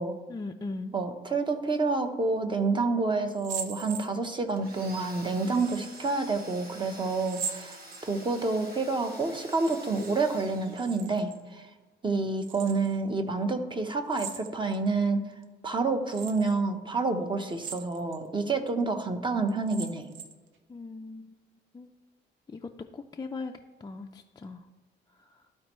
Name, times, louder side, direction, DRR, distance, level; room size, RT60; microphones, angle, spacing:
voice 1, 0.3-1.0 12.1-12.2 20.7-21.3 21.7-21.9 22.5-23.5 23.8-24.7 25.1-25.4, left 3 dB, 20° left, 2 dB, 0.4 m, -39 dB
voice 2, 0.9-7.8 8.0-11.7 12.0-15.2 15.6-20.1, right 3 dB, 25° right, 7 dB, 0.9 m, -28 dB
sound 1, 3.3-4.5 5.5-6.1 7.2-8.4 9.4-10.1 10.4-11.4 12.4-13.0 14.1-14.9 15.4-15.5 16.1-16.6 17.4-18.2 18.7-18.8 19.5-20.5, right 6 dB, 75° right, 0.7 m, -40 dB
Domestic sounds home sounds, 4.6-11.4, right 1 dB, 50° right, 1.4 m, -48 dB
13.0 x 4.4 x 3.1 m, 1.3 s
cardioid pair, 90°, 20 cm